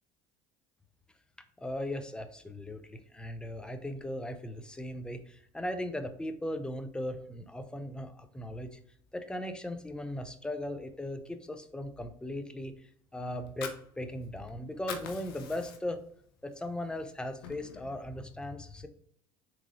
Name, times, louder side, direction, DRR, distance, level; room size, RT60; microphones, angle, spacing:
voice 1, 1.6-8.8 9.1-12.7 13.1-16.0 16.4-18.9, left 1 dB, 5° left, 8 dB, 0.5 m, -38 dB
Fire, 13.3-14.5 14.7-16.1 16.5-16.7 17.1-18.0, left 7 dB, 85° left, 0.6 m, -43 dB
3.7 x 3.1 x 2.5 m, 0.66 s
hypercardioid pair, 85°, 12 cm